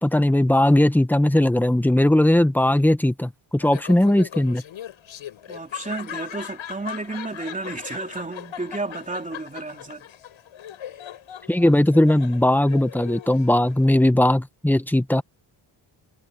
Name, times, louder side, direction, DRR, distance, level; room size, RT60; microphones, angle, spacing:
voice 1, 0.0-4.6 11.5-15.2, left 1 dB, 5° left, 0.9 m, -18 dB
Laughter, 3.6-14.0, left 10 dB, 70° left, 7.9 m, -39 dB
voice 2, 5.5-10.1, right 3 dB, 15° right, 3.1 m, -32 dB
cardioid pair, 130°, 49 cm